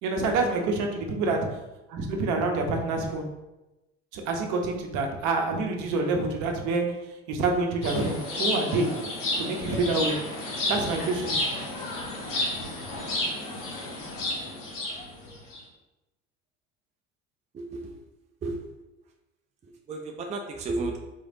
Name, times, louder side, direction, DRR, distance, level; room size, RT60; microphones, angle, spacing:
voice 1, 0.0-1.4 1.9-3.2 4.1-6.8 7.3-8.9 9.4-10.1 10.7-11.3, right 3 dB, 55° right, 3 dB, 0.8 m, -27 dB
sound 1, 7.8-15.6, left 1 dB, 75° left, 1.1 m, -31 dB
voice 2, 17.5-18.0 18.4-18.6 19.6-21.0, right 2 dB, 20° right, 2 dB, 0.4 m, -33 dB
3.9 x 3.2 x 2.6 m, 1.0 s
hypercardioid pair, 65°, 36 cm